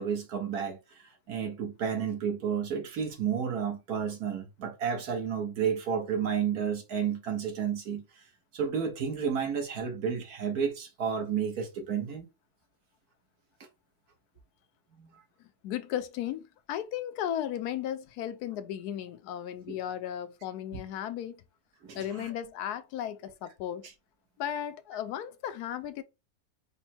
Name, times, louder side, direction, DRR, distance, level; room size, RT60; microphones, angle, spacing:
voice 1, 0.0-8.2 8.5-12.3 15.0-15.2 19.7-19.8 20.7-20.8 21.8-22.3, right 7 dB, 70° right, 1.6 m, -31 dB
voice 2, 15.6-21.4 21.9-23.9 24.4-26.0, left 10 dB, 80° left, 1.1 m, -35 dB
5.2 x 2.2 x 4.3 m
omnidirectional pair, 1.6 m